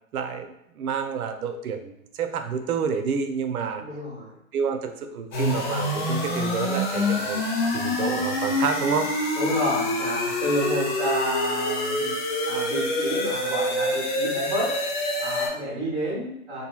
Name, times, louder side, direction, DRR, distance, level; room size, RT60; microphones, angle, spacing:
voice 1, 0.1-3.8 4.5-7.4 7.7-9.1, right 6 dB, 80° right, 7 dB, 0.5 m, -29 dB
voice 2, 3.8-4.4 9.4-12.1 12.5-14.7 15.2-16.7, equal, 10° right, -5 dB, 0.6 m, -29 dB
sound 1, 5.3-15.5, left 1 dB, 35° left, 0.5 m, -26 dB
2.7 x 2.6 x 2.2 m, 0.78 s
hypercardioid pair, 140°, 43 cm